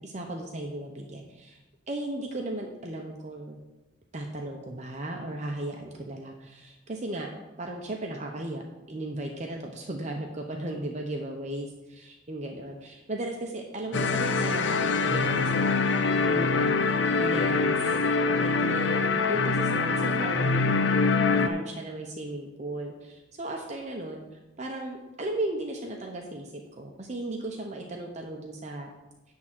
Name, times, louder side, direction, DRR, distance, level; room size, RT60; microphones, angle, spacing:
voice 1, 0.0-1.6 1.9-3.6 4.1-7.3 7.6-16.8 17.2-18.0 18.4-24.2 24.6-28.9, right 1 dB, 40° right, 1 dB, 0.9 m, -36 dB
sound 1, 13.9-21.5, left 4 dB, 75° left, 0.6 m, -24 dB
11.0 x 3.8 x 7.5 m, 1.1 s
head